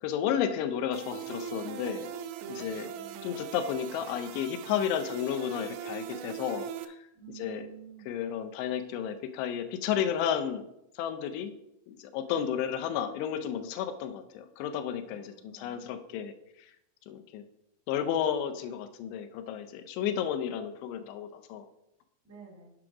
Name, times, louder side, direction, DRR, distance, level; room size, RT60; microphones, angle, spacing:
voice 1, 0.0-2.1 2.5-2.9 3.2-7.1 7.4-7.7 8.1-10.6 11.0-11.5 11.9-16.3 16.6-16.7 17.1-17.4 17.9-21.7, left 9 dB, 80° left, 9 dB, 2.8 m, -32 dB
sound 1, 0.9-6.9, right 9 dB, 85° right, 2.9 m, -41 dB
voice 2, 2.6-3.6 7.1-8.1 12.2-12.5 15.0-16.0 22.2-22.7, right 7 dB, 10° right, -2 dB, 0.8 m, -51 dB
7.8 x 4.9 x 5.9 m, 0.83 s
omnidirectional pair, 5.1 m